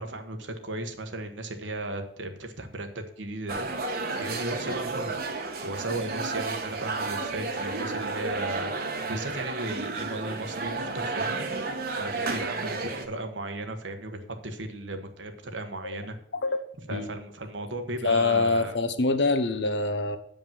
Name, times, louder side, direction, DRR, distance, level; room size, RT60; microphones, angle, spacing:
voice 1, 0.0-16.2 16.9-18.8, right 2 dB, 80° right, 6 dB, 1.3 m, -36 dB
sound 1, 3.5-13.1, right 3 dB, 55° right, 1.2 m, -32 dB
voice 2, 18.0-20.2, left 3 dB, 65° left, 9 dB, 0.9 m, -24 dB
9.3 x 5.2 x 7.4 m, 0.67 s
head